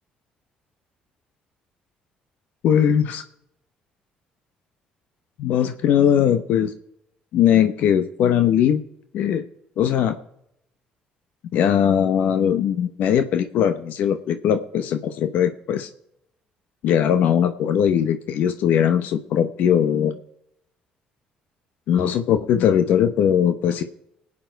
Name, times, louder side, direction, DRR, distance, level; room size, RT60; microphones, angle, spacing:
voice 1, 2.6-3.2 5.4-6.7 7.3-8.8 9.1-9.4 9.8-10.2 11.5-15.9 16.8-20.2 21.9-23.8, left 9 dB, 75° left, 10 dB, 0.9 m, -20 dB
21.0 x 8.7 x 4.6 m, 0.78 s
supercardioid pair, 80°, 3 cm